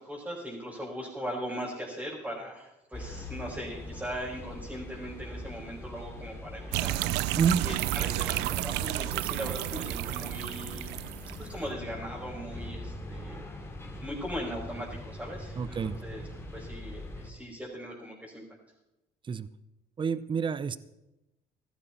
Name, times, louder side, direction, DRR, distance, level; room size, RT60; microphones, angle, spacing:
voice 1, 0.0-7.0 7.6-10.9 11.4-13.4 14.0-16.2 16.5-18.4, equal, 10° right, -6 dB, 5.0 m, -39 dB
sound 1, 2.9-17.3, left 1 dB, 15° left, 2.6 m, -42 dB
sound 2, 6.7-11.5, right 18 dB, 90° right, 0.4 m, -31 dB
voice 2, 15.6-16.0 19.3-19.5 20.0-20.8, right 6 dB, 30° right, 16 dB, 0.7 m, -28 dB
15.5 x 14.0 x 4.4 m, 0.92 s
cardioid pair, 110°, 17 cm